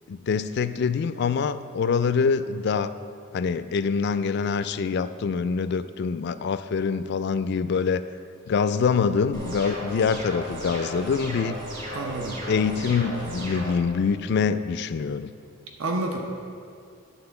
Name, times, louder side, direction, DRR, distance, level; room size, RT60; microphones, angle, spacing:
voice 1, 0.1-2.9 3.3-8.0 8.5-11.5 12.5-15.3, left 5 dB, 55° left, 13 dB, 0.3 m, -25 dB
sound 1, 9.3-13.7, equal, 40° right, 2.6 m, -35 dB
voice 2, 11.9-12.4 15.8-16.2, right 2 dB, 75° right, 2 dB, 0.8 m, -28 dB
10.5 x 4.3 x 6.9 m, 2.3 s
head